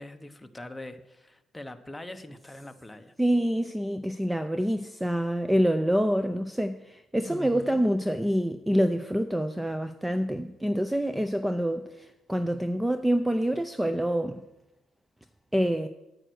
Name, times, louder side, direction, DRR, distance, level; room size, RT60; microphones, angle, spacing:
voice 1, 0.0-3.1 7.2-7.8, left 1 dB, 10° left, 8 dB, 0.9 m, -42 dB
voice 2, 3.2-14.4 15.5-15.9, equal, 5° right, 10 dB, 0.5 m, -26 dB
9.2 x 9.0 x 6.3 m, 0.96 s
cardioid pair, 90°, 0 cm